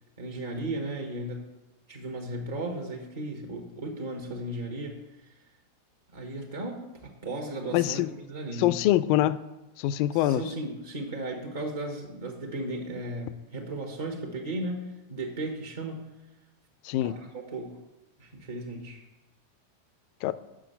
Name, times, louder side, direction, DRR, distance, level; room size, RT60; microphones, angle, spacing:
voice 1, 0.2-1.5 1.9-5.3 6.1-8.8 10.1-16.1 17.0-17.8 18.2-19.0, right 2 dB, 65° right, 0 dB, 1.2 m, -36 dB
voice 2, 7.7-8.1 8.6-9.4 9.8-10.4 16.8-17.1 20.2-20.3, left 14 dB, 45° left, 16 dB, 0.3 m, -24 dB
6.2 x 5.7 x 6.7 m, 1.0 s
figure-of-eight pair, 90°, 0 cm